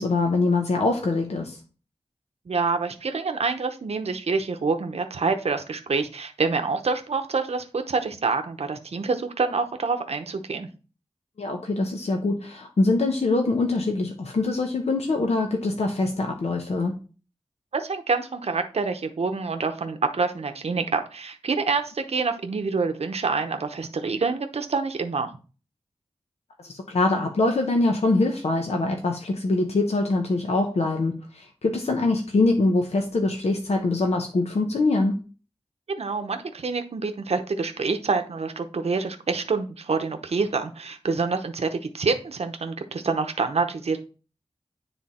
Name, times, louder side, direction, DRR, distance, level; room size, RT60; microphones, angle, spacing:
voice 1, 0.0-1.6 11.4-17.0 26.6-35.2, left 2 dB, 85° left, 3 dB, 0.9 m, -24 dB
voice 2, 2.5-10.7 17.7-25.3 36.0-44.0, right 4 dB, 75° right, 6 dB, 0.8 m, -27 dB
9.8 x 3.4 x 4.2 m, 0.36 s
wide cardioid pair, 70°, 11 cm